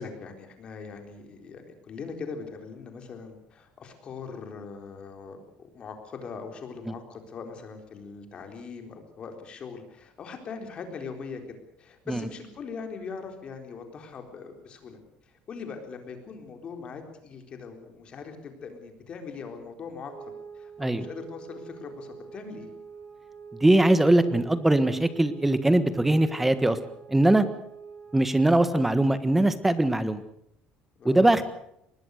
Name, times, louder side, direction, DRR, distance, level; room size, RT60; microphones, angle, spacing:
voice 1, 0.0-11.4 11.8-15.0 15.3-20.1 20.5-22.7 31.0-31.3, left 5 dB, 35° left, 5 dB, 4.1 m, -41 dB
sound 1, 20.1-28.4, right 6 dB, 35° right, 4.3 m, -46 dB
voice 2, 23.6-26.8 27.1-27.4 28.1-30.2 31.0-31.4, right 1 dB, 5° right, 12 dB, 1.5 m, -21 dB
23.5 x 20.5 x 6.6 m, 0.74 s
cardioid pair, 155°, 3 cm